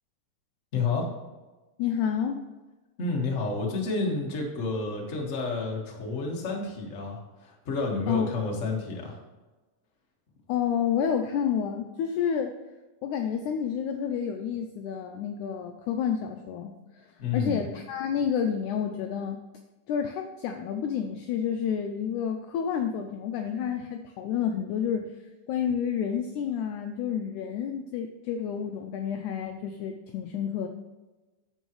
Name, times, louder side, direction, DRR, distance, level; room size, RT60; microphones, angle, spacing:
voice 1, 0.7-1.1 3.0-9.2 17.2-17.6, left 3 dB, 65° left, -1 dB, 0.7 m, -30 dB
voice 2, 1.8-2.5 8.1-8.3 10.5-12.6 13.0-17.1 17.3-19.4 19.9-25.2 25.5-30.7, left 8 dB, 85° left, 5 dB, 1.7 m, -29 dB
11.0 x 7.2 x 3.1 m, 1.2 s
omnidirectional pair, 4.1 m